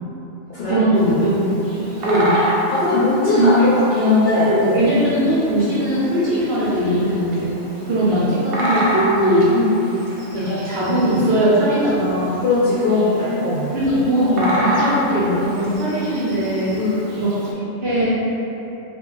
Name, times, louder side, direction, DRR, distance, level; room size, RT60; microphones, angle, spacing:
voice 1, 0.6-1.5 1.8-2.4 3.3-3.7 4.5-7.5 7.8-9.5 10.3-12.4 13.7-16.8 17.1-17.3 17.8-18.2, right 1 dB, 60° right, -9 dB, 0.7 m, -19 dB
Bird vocalization bird call bird song, 0.9-17.5, equal, 90° right, 1.1 m, -29 dB
voice 2, 2.7-4.9 9.5-9.8 12.4-13.7 16.7-17.0, left 3 dB, 60° left, -10 dB, 0.6 m, -19 dB
2.3 x 2.1 x 3.8 m, 3.0 s
omnidirectional pair, 1.4 m